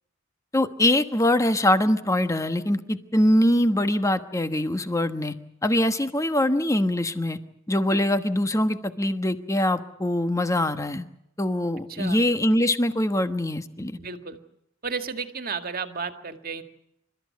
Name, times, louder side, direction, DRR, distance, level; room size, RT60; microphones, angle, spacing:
voice 1, 0.5-5.3 5.6-7.4 7.7-11.1 11.4-14.0, left 1 dB, 15° left, 9 dB, 1.2 m, -23 dB
voice 2, 11.9-12.2 14.0-14.4 14.8-16.6, right 5 dB, 50° right, 7 dB, 2.0 m, -33 dB
28.5 x 14.0 x 9.4 m, 0.81 s
head